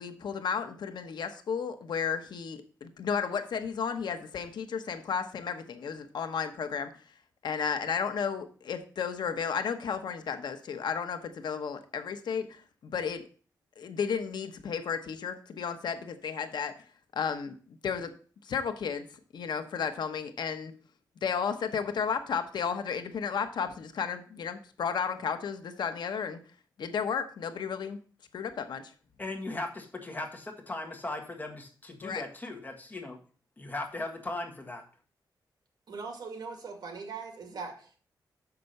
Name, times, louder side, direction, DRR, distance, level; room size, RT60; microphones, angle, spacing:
voice 1, 0.0-7.1 7.4-13.3 13.8-16.8 17.1-18.2 18.4-20.7 21.2-26.4 26.8-28.0 28.3-28.9 32.0-32.2, left 6 dB, 75° left, 9 dB, 1.0 m, -33 dB
voice 2, 29.2-33.2 33.6-34.8, left 2 dB, 25° left, 3 dB, 1.6 m, -38 dB
voice 3, 35.9-38.0, right 4 dB, 65° right, 4 dB, 2.2 m, -40 dB
6.8 x 5.9 x 6.6 m, 0.42 s
wide cardioid pair, 140°, 8 cm